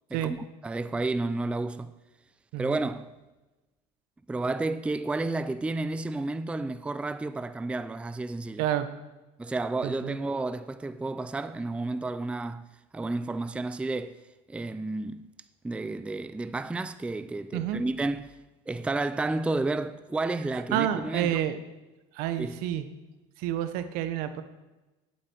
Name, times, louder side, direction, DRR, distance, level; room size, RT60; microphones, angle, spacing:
voice 1, 0.6-1.9 2.6-3.1 4.3-8.6 9.4-12.7 12.9-14.2 14.5-15.3 15.6-18.3 18.7-21.4 22.4-22.6, right 2 dB, 5° right, 0.4 m, -31 dB
voice 2, 2.5-2.9 8.6-8.9 9.8-10.2 17.5-17.8 20.7-21.6 22.1-22.9 23.4-24.4, right 11 dB, 70° right, 1.0 m, -29 dB
11.0 x 8.9 x 4.6 m
supercardioid pair, 105°, 16 cm